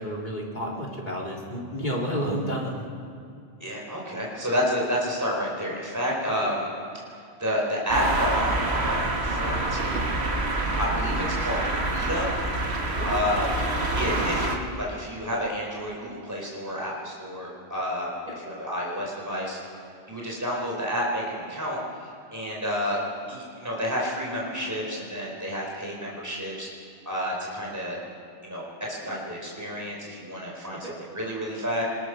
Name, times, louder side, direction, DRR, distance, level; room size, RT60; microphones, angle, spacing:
voice 1, 0.0-2.8 6.4-6.5 13.0-13.2 18.3-18.4 30.8-30.9, equal, 45° left, -3 dB, 4.0 m, -31 dB
voice 2, 3.6-6.7 7.4-10.1 10.8-12.3 13.0-13.5 13.9-18.1 18.4-19.6 20.1-23.0 23.3-26.7 27.0-28.0 28.4-31.8, equal, 15° right, -3 dB, 4.7 m, -30 dB
sound 1, 7.9-14.6, right 2 dB, 75° right, 2.2 m, -27 dB
24.5 x 21.5 x 6.6 m, 2.5 s
omnidirectional pair, 1.1 m